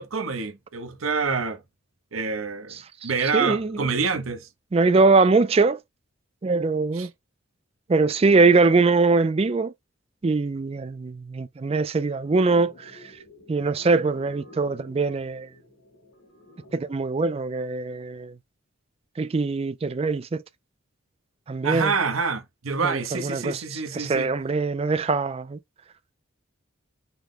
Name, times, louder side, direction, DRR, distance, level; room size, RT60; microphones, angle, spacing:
voice 1, 0.0-1.6 2.1-4.5 6.9-7.1 21.6-24.3, right 5 dB, 90° right, 0.9 m, -27 dB
voice 2, 2.7-3.8 4.7-5.8 6.4-7.1 7.9-9.7 10.2-12.9 13.5-15.5 16.7-18.3 19.2-20.4 21.5-21.9 22.8-25.6, right 3 dB, 30° right, 0.3 m, -22 dB
sound 1, 12.1-17.1, left 1 dB, 80° left, 2.1 m, -50 dB
5.7 x 2.1 x 3.7 m
head